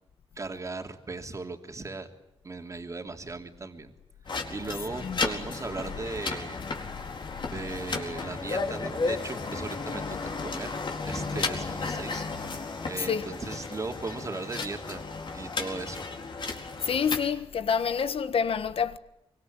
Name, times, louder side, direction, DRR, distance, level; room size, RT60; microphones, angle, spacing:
voice 1, 0.4-2.1 2.4-3.9 4.3-6.9 7.4-10.8 11.0-12.6 12.8-15.0 15.3-16.0, right 3 dB, 30° right, 3.0 m, -37 dB
sound 1, 4.3-17.2, left 4 dB, 50° left, 4.5 m, -34 dB
voice 2, 13.0-13.3 16.8-19.0, left 6 dB, 70° left, 1.5 m, -27 dB
25.0 x 24.5 x 9.1 m
wide cardioid pair, 120°, 10 cm